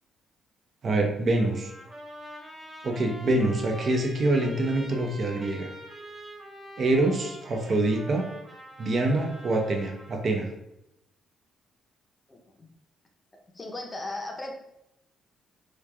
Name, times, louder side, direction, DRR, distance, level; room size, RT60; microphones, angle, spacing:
voice 1, 0.8-1.7 2.8-5.7 6.8-8.3 8.8-10.5, right 2 dB, 50° right, 3 dB, 0.6 m, -25 dB
Trumpet, 1.4-10.3, equal, 20° right, 1.1 m, -45 dB
voice 2, 13.3-14.5, left 2 dB, 25° left, 2 dB, 0.6 m, -36 dB
3.1 x 2.4 x 3.4 m, 0.83 s
cardioid pair, 90°, 0 cm